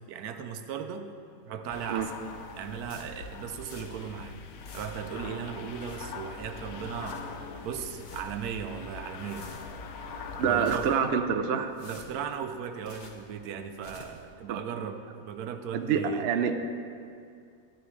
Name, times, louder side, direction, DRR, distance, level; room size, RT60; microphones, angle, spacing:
voice 1, 0.1-1.1 1.4-2.1 2.6-4.4 4.7-7.2 7.6-9.5 10.4-11.0 11.8-16.3, right 7 dB, 85° right, 7 dB, 1.1 m, -37 dB
sound 1, 1.7-11.0, left 4 dB, 80° left, 1.1 m, -42 dB
sound 2, 2.9-4.2 4.4-5.2 5.6-6.4 6.8-7.4 7.8-8.5 8.9-9.9 10.4-11.2 11.6-13.3 13.6-14.3, left 2 dB, 40° left, 0.9 m, -51 dB
voice 2, 10.4-11.7 14.5-14.6 15.7-16.6, right 7 dB, 60° right, 7 dB, 0.7 m, -26 dB
12.0 x 10.0 x 3.2 m, 2.3 s
omnidirectional pair, 1.6 m